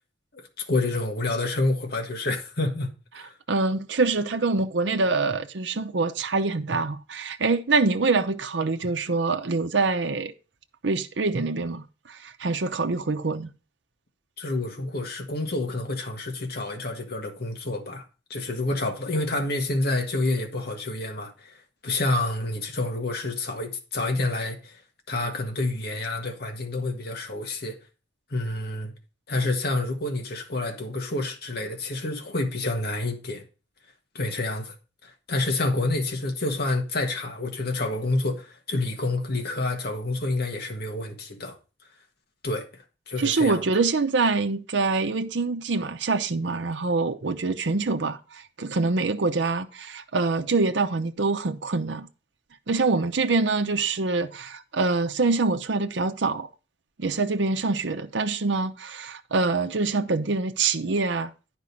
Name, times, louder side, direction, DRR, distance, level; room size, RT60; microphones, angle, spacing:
voice 1, 0.3-3.3 14.4-21.6 21.8-24.8 25.1-27.8 28.3-28.9 29.3-33.4 34.1-34.7 35.0-41.6 42.4-43.8, left 2 dB, 60° left, 1.7 m, -28 dB
voice 2, 3.5-10.3 10.8-13.5 43.2-52.1 52.7-56.5 57.0-61.3, right 3 dB, 80° right, 0.7 m, -25 dB
9.9 x 5.3 x 5.3 m
head